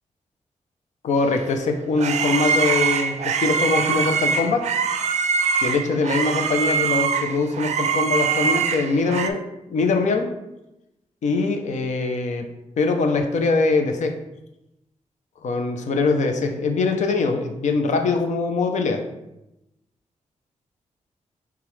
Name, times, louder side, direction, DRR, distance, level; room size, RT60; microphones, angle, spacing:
voice 1, 1.0-4.7 5.6-9.4 9.7-10.4 11.2-12.5 12.8-14.2 15.4-19.0, left 3 dB, 75° left, 5 dB, 0.6 m, -22 dB
sound 1, 1.4-9.3, right 6 dB, 70° right, 0.4 m, -23 dB
6.8 x 2.4 x 3.2 m, 0.90 s
wide cardioid pair, 155°, 12 cm